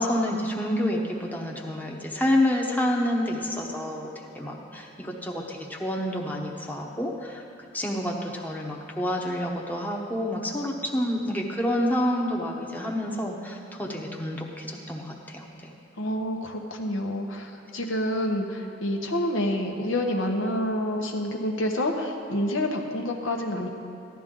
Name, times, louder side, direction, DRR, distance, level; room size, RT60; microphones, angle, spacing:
voice 1, 0.0-4.1 4.3-7.4 7.7-15.7, left 1 dB, 10° left, -1 dB, 1.0 m, -28 dB
voice 2, 16.0-23.7, left 1 dB, 80° left, 1 dB, 1.2 m, -28 dB
15.0 x 11.5 x 3.8 m, 2.8 s
head